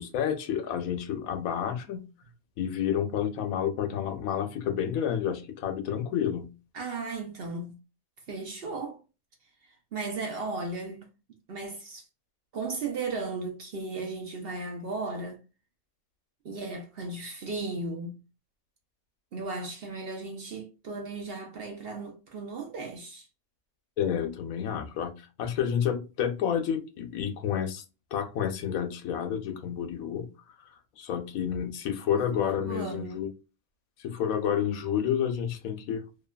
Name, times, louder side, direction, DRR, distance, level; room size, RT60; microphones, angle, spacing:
voice 1, 0.0-2.1 2.6-6.5 24.0-27.8 28.1-30.3 31.0-33.3 34.0-36.0, left 9 dB, 85° left, 1.1 m, -30 dB
voice 2, 6.7-7.8 8.3-9.0 9.6-11.1 11.5-12.1 12.5-15.4 16.4-18.2 19.3-23.3 32.1-33.3, right 3 dB, 60° right, 0.7 m, -36 dB
2.8 x 2.3 x 2.2 m
omnidirectional pair, 1.4 m